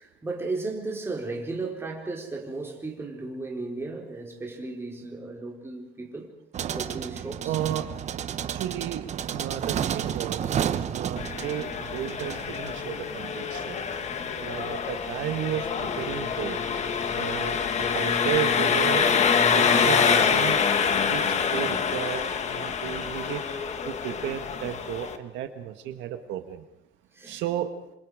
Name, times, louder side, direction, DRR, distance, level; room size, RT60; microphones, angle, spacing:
voice 1, 0.0-6.3 6.7-7.6 14.4-14.7 27.1-27.4, right 3 dB, 10° right, -1 dB, 4.2 m, -35 dB
sound 1, 6.5-21.8, right 9 dB, 35° right, 1.0 m, -35 dB
voice 2, 7.4-7.8 8.5-10.5 10.9-11.7 11.9-13.8 14.4-16.6 17.2-17.5 17.9-19.2 19.5-20.6 21.0-23.4 23.9-26.6 27.2-27.7, right 11 dB, 70° right, 7 dB, 1.7 m, -33 dB
Engine, 11.2-25.2, left 6 dB, 35° left, 1.7 m, -26 dB
28.0 x 26.5 x 5.0 m, 0.87 s
cardioid pair, 160°, 20 cm